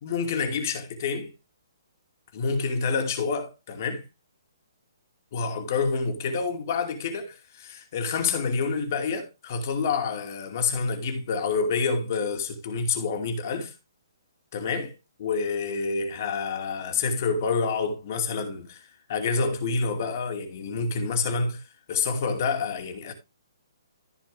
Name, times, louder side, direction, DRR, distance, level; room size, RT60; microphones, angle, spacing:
voice 1, 0.0-1.3 2.3-4.0 5.3-13.7 14.5-14.9 15.2-23.1, left 4 dB, 45° left, 2.5 m, -28 dB
14.5 x 5.1 x 3.5 m
figure-of-eight pair, 130°, 2 cm